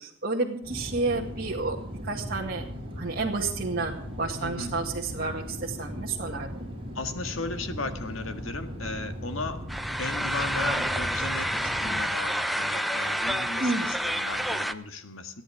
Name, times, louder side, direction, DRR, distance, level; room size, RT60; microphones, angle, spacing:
voice 1, 0.0-1.8 2.0-2.6 3.0-6.7 13.6-13.9, right 3 dB, 50° right, -2 dB, 2.0 m, -30 dB
sound 1, 0.6-12.0, equal, 30° right, 6.5 m, -38 dB
voice 2, 4.4-4.8 6.9-9.7 10.0-15.4, left 3 dB, 70° left, 8 dB, 1.8 m, -36 dB
sound 2, 9.7-14.7, equal, ahead, 0.8 m, -29 dB
30.0 x 10.5 x 3.6 m, 0.64 s
head